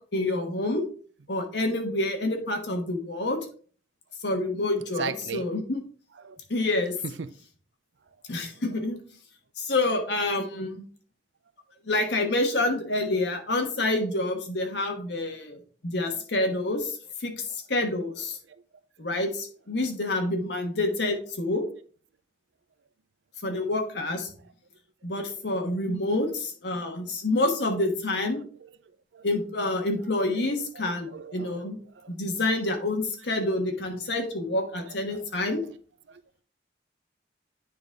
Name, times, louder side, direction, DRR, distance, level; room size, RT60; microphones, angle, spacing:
voice 1, 0.1-0.8 1.3-3.4 4.2-5.8 6.5-6.9 8.3-9.0 9.6-10.8 11.9-15.6 15.8-17.3 17.7-18.4 19.0-21.7 23.4-24.3 25.0-28.4 29.2-31.8 32.1-35.6, left 2 dB, 70° left, 1.4 m, -27 dB
voice 2, 5.0-5.4 6.2-6.4 7.0-7.4 8.5-8.8 18.5-18.6 23.5-23.6 28.3-28.7 29.1-29.3 30.3-30.5 30.7-32.1 34.9-35.2 35.6-35.7 36.1-36.4, right 6 dB, 85° right, 0.5 m, -39 dB
9.2 x 3.9 x 3.4 m
head